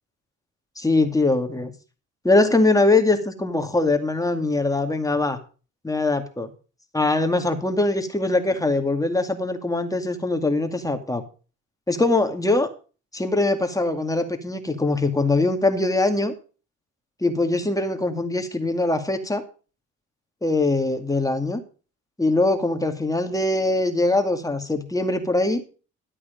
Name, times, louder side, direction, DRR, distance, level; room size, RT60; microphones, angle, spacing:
voice 1, 0.8-1.7 2.2-5.4 5.8-6.5 6.9-11.2 11.9-12.7 13.1-16.3 17.2-19.4 20.4-21.6 22.2-25.6, left 2 dB, 10° left, 6 dB, 2.3 m, -22 dB
12.5 x 8.4 x 5.3 m, 0.36 s
cardioid pair, 90°, 30 cm